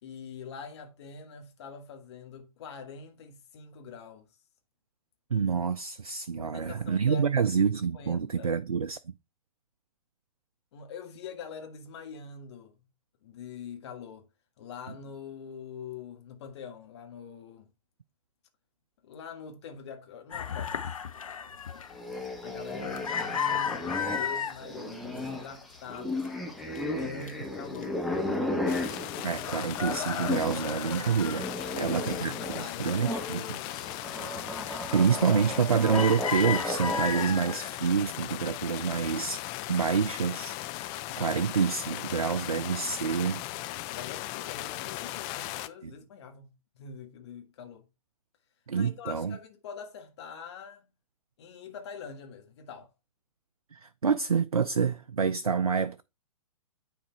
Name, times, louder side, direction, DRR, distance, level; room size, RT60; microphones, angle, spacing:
voice 1, 0.0-4.3 6.4-7.3 7.9-8.5 10.7-12.7 13.2-14.3 14.6-17.7 19.0-20.9 22.4-28.5 31.5-33.9 43.9-47.8 48.7-50.8 51.4-52.9, left 6 dB, 50° left, 1.7 m, -44 dB
voice 2, 5.3-9.0 29.2-33.6 34.7-39.4 39.7-43.4 45.8-45.9 48.7-49.4 53.7-56.0, right 6 dB, 80° right, 0.5 m, -28 dB
sound 1, 20.3-24.6 25.1-25.6 25.9-27.3 27.7-27.8 28.1-29.1 29.4-32.2 32.5-33.6 34.1-34.3 34.8-35.1 35.5-37.7, left 7 dB, 65° left, 1.0 m, -34 dB
sound 2, 21.9-30.7 31.0-37.8, left 1 dB, ahead, 1.2 m, -35 dB
sound 3, 28.7-45.7, left 16 dB, 25° left, 0.5 m, -38 dB
9.5 x 4.0 x 4.5 m
figure-of-eight pair, 115°, 18 cm